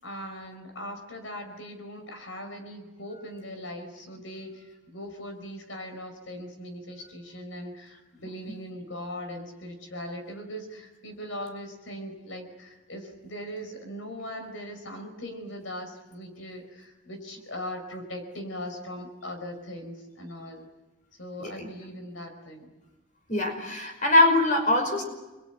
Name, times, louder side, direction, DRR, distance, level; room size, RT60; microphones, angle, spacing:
voice 1, 0.0-20.7 21.2-22.7, equal, 80° left, 5 dB, 4.8 m, -40 dB
voice 2, 23.3-25.0, left 1 dB, 40° left, 4 dB, 5.4 m, -22 dB
29.0 x 22.5 x 9.2 m, 1.1 s
head